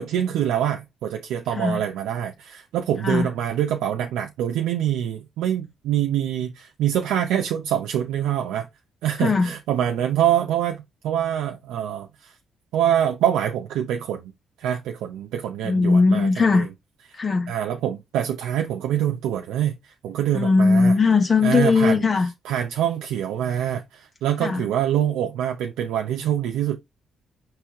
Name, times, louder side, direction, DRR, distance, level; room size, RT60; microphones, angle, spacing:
voice 1, 0.0-8.7 9.0-12.3 12.7-14.3 14.6-16.7 17.5-20.9 21.4-22.0 22.5-26.8, right 10 dB, 90° right, 0.6 m, -25 dB
voice 2, 1.5-1.8 3.0-3.3 9.2-9.5 15.6-16.7 17.1-17.5 20.3-22.3 24.4-24.6, left 4 dB, 40° left, 0.8 m, -19 dB
4.6 x 3.3 x 3.4 m
cardioid pair, 90°, 0 cm